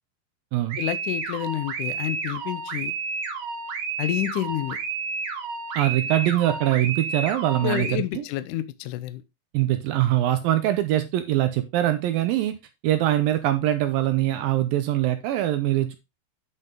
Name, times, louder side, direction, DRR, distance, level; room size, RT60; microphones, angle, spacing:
sound 1, 0.7-7.9, right 4 dB, 60° right, 1.6 m, -31 dB
voice 1, 0.8-2.9 4.0-4.8 7.6-9.2, left 13 dB, 90° left, 1.8 m, -29 dB
voice 2, 5.7-8.2 9.5-12.6 12.8-16.0, right 13 dB, 75° right, 2.3 m, -23 dB
9.5 x 5.6 x 3.7 m
omnidirectional pair, 4.5 m